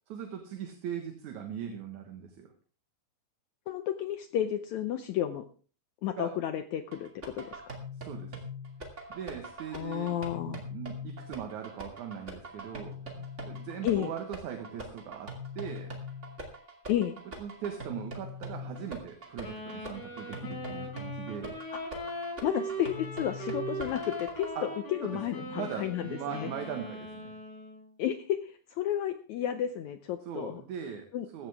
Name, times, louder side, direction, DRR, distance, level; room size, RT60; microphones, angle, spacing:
voice 1, 0.1-2.5 6.2-6.4 8.0-8.4 9.1-10.2 10.5-16.0 17.4-21.6 24.6-24.7 25.0-27.3 30.3-31.5, right 8 dB, 60° right, 4 dB, 2.5 m, -40 dB
voice 2, 3.7-5.5 6.0-7.8 9.7-10.6 13.8-14.1 16.9-17.2 21.7-21.8 22.4-26.5 28.0-30.6 31.1-31.3, left 11 dB, 85° left, 9 dB, 1.6 m, -32 dB
sound 1, 6.9-24.5, left 1 dB, 20° right, 2.3 m, -42 dB
Wind instrument woodwind instrument, 19.4-27.9, right 1 dB, 55° left, 7.0 m, -40 dB
16.0 x 13.5 x 3.5 m, 0.38 s
omnidirectional pair, 4.2 m